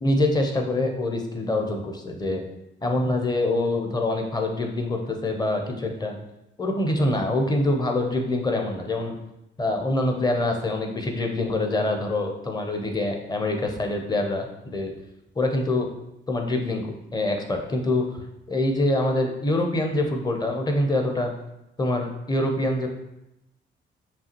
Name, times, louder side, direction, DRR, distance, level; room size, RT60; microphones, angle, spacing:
voice 1, 0.0-2.4 2.8-6.2 6.6-9.1 9.6-14.9 15.4-15.9 16.3-18.2 18.5-21.3 21.8-22.9, left 2 dB, 20° left, 3 dB, 0.7 m, -25 dB
5.5 x 2.4 x 2.9 m, 0.89 s
cardioid pair, 90°, 20 cm